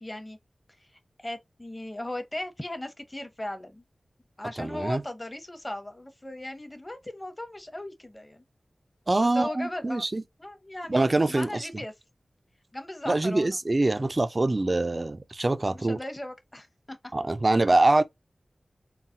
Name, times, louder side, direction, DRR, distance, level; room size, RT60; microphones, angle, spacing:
voice 1, 0.0-0.4 1.2-3.8 4.4-8.4 9.2-10.0 10.4-11.9 12.7-13.6 15.7-17.1, left 1 dB, 25° left, 0.9 m, -37 dB
voice 2, 4.6-5.0 9.1-10.2 10.9-11.7 13.1-16.0 17.1-18.0, right 2 dB, 40° right, 0.4 m, -24 dB
3.9 x 2.0 x 2.6 m
cardioid pair, 45°, 0 cm